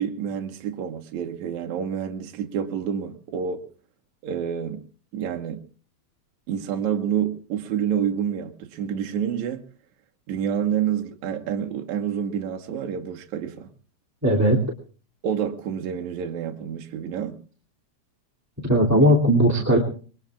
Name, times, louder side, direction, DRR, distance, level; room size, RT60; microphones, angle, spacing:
voice 1, 0.0-3.7 4.2-4.8 5.1-5.6 6.5-9.6 10.3-13.7 15.2-17.4, right 8 dB, 70° right, 2.4 m, -28 dB
voice 2, 14.2-14.6 18.6-19.8, equal, 5° right, 2.0 m, -18 dB
26.0 x 22.0 x 2.4 m
omnidirectional pair, 3.7 m